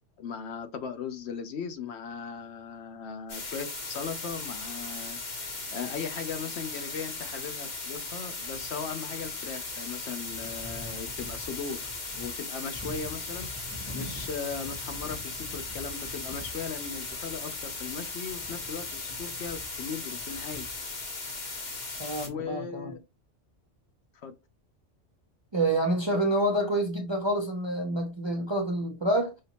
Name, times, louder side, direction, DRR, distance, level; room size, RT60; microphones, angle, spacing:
voice 1, 0.2-20.6 22.3-23.0 24.2-24.3 26.1-26.2, left 6 dB, 70° left, 0.8 m, -38 dB
sound 1, 3.3-22.3, left 3 dB, 40° left, 1.0 m, -37 dB
sound 2, 4.4-5.7 6.1-6.2 6.4-6.6 7.3-7.4 7.6-21.1 21.8-22.5, left 1 dB, 5° left, 0.7 m, -47 dB
voice 2, 22.0-22.9 25.5-29.4, right 1 dB, 35° right, 0.5 m, -28 dB
4.9 x 2.7 x 2.8 m
omnidirectional pair, 1.2 m